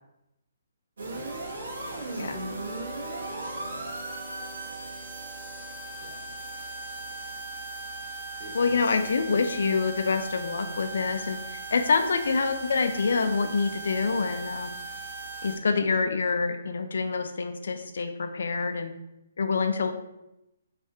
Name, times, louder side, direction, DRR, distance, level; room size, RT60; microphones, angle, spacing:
sound 1, 1.0-15.6, right 2 dB, 70° right, 1.5 m, -38 dB
voice 1, 1.7-2.3 3.3-3.9 6.0-6.2 8.4-9.0 15.6-15.8, right 1 dB, 45° right, -1 dB, 1.0 m, -47 dB
voice 2, 8.5-14.8 15.4-18.9 19.4-19.9, left 4 dB, 70° left, 8 dB, 0.4 m, -26 dB
4.7 x 3.3 x 2.8 m, 0.88 s
hypercardioid pair, 170°, 0 cm